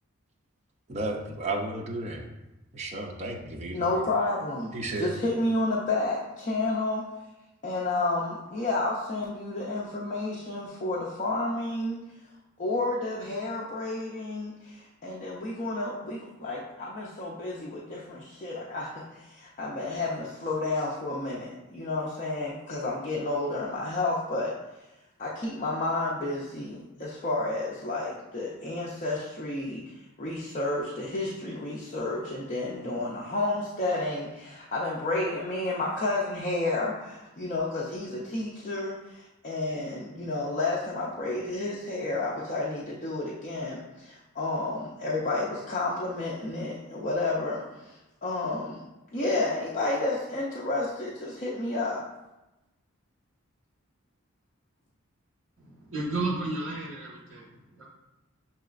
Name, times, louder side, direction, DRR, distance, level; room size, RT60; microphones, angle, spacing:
voice 1, 0.9-2.3 2.7-3.8 4.7-5.2, right 2 dB, 30° right, 0 dB, 0.5 m, -33 dB
voice 2, 3.7-7.0 7.6-12.0 12.6-24.5 25.2-48.8 49.1-52.0, left 2 dB, 35° left, -5 dB, 0.5 m, -31 dB
voice 3, 55.6-57.9, right 2 dB, 60° right, -4 dB, 1.4 m, -33 dB
6.6 x 2.9 x 2.4 m, 0.98 s
head